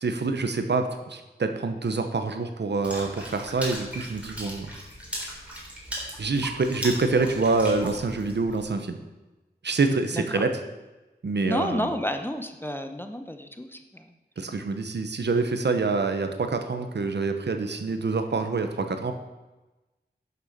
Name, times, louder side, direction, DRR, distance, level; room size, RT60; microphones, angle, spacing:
voice 1, 0.0-4.7 6.2-9.0 9.6-10.5 11.2-11.9 14.4-19.1, right 3 dB, 85° right, 7 dB, 1.1 m, -26 dB
Water / Splash splatter, 2.8-8.6, equal, 5° right, 3.7 m, -38 dB
voice 2, 10.1-10.4 11.4-14.0, equal, 10° left, 6 dB, 0.9 m, -31 dB
11.0 x 6.9 x 6.7 m, 1.1 s
wide cardioid pair, 85°, 17 cm